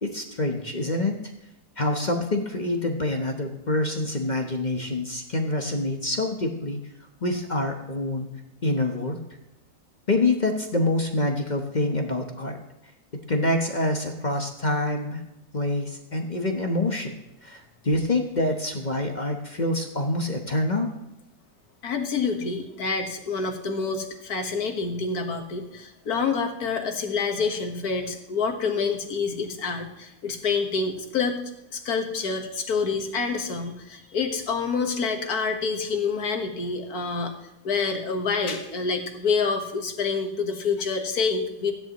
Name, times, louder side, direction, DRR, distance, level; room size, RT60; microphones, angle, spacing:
voice 1, 0.0-1.2 1.8-6.8 7.2-8.3 8.6-9.2 10.1-12.6 13.3-15.2 15.5-20.9, left 2 dB, 30° left, 3 dB, 1.0 m, -26 dB
voice 2, 21.8-31.4 31.7-37.3 37.6-41.7, left 5 dB, 65° left, 4 dB, 1.9 m, -27 dB
16.0 x 10.5 x 3.0 m, 0.88 s
omnidirectional pair, 1.8 m